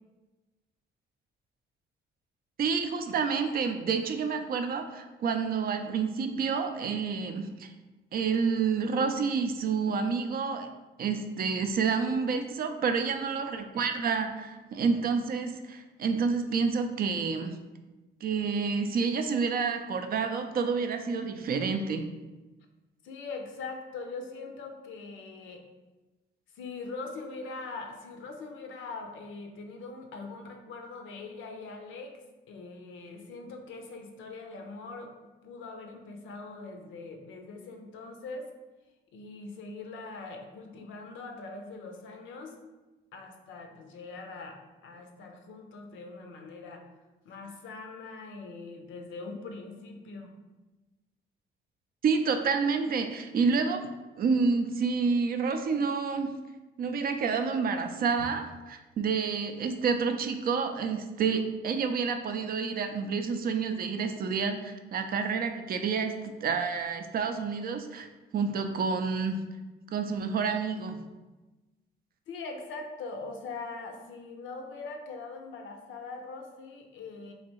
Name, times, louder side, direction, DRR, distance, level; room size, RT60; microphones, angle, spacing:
voice 1, 2.6-7.7 8.1-10.7 11.0-17.6 18.2-22.1 52.0-53.9 54.2-56.3 56.8-68.1 68.3-69.4 69.9-71.0, right 5 dB, 50° right, 7 dB, 0.4 m, -29 dB
voice 2, 23.0-25.7 26.5-32.2 32.5-35.1 35.4-38.5 39.1-42.6 43.1-46.9 47.2-50.3 72.3-77.3, left 3 dB, 75° left, 4 dB, 0.6 m, -42 dB
3.1 x 2.7 x 3.0 m, 1.1 s
cardioid pair, 90°, 20 cm